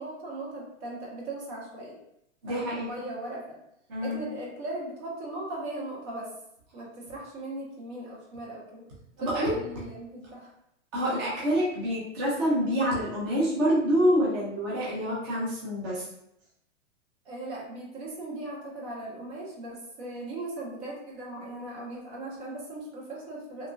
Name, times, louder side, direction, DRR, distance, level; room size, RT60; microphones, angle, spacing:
voice 1, 0.0-2.0 2.5-3.6 4.0-6.3 6.7-8.9 9.2-10.5 11.0-11.2 17.2-23.7, right 2 dB, 60° right, -3 dB, 1.2 m, -38 dB
voice 2, 2.4-2.9 3.9-4.3 9.2-9.5 10.9-16.1, equal, 20° right, -7 dB, 0.3 m, -27 dB
2.8 x 2.3 x 2.3 m, 0.78 s
hypercardioid pair, 145°, 38 cm